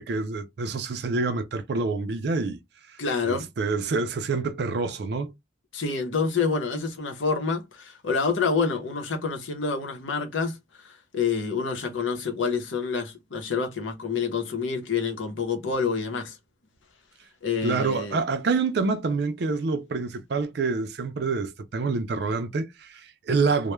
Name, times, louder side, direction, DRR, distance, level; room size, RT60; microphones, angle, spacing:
voice 1, 0.0-2.6 3.2-5.3 17.6-23.7, right 4 dB, 60° right, 0.4 m, -27 dB
voice 2, 3.0-3.5 5.7-10.6 10.8-16.4 17.4-18.2, left 5 dB, 85° left, 0.7 m, -27 dB
2.2 x 2.1 x 3.0 m
head